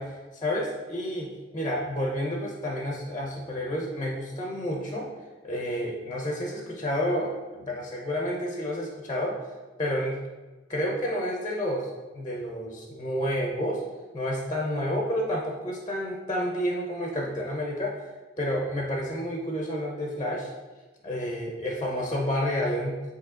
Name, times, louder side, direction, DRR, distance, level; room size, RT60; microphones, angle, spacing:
voice 1, 0.0-5.1 5.4-9.4 9.8-10.2 10.7-11.9 12.1-13.8 14.1-18.1 18.4-20.5 21.0-23.0, equal, 25° left, -1 dB, 0.7 m, -30 dB
8.7 x 2.9 x 3.8 m, 1.2 s
head